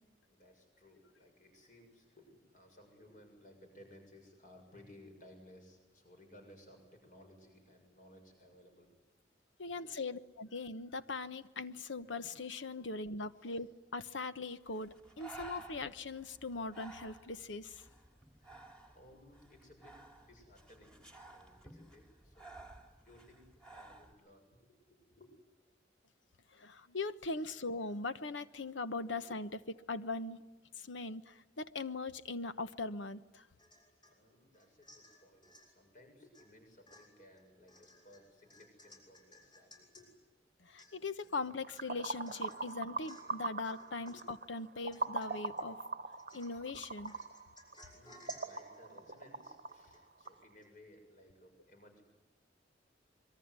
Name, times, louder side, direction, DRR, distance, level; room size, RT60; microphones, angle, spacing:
voice 1, 0.3-8.9 9.7-10.1 13.4-13.6 18.3-22.7 23.0-25.3 29.1-29.2 34.0-40.1 44.1-44.2 47.9-52.0, left 1 dB, 45° left, 4 dB, 7.0 m, -60 dB
voice 2, 9.6-13.7 13.9-17.8 26.5-30.4 30.8-33.5 40.6-45.8 46.3-47.2, left 3 dB, 90° left, 12 dB, 1.1 m, -40 dB
Breathing, 14.6-24.1, right 2 dB, 5° left, 3.1 m, -55 dB
Domestic sounds home sounds / Chink clink / Drip, 33.6-34.2 34.5-35.7 36.3-36.5 36.9-40.1 40.5-40.6 40.8-41.3 41.7-41.8 42.3-42.7 43.0-43.4 43.6-44.4 44.9-45.6 46.1-46.7 47.0-50.3 50.6-50.7, equal, 25° left, 7.0 m, -59 dB
sound 1, 41.5-50.4, right 3 dB, 50° right, 1.0 m, -42 dB
25.5 x 23.0 x 9.6 m, 1.2 s
head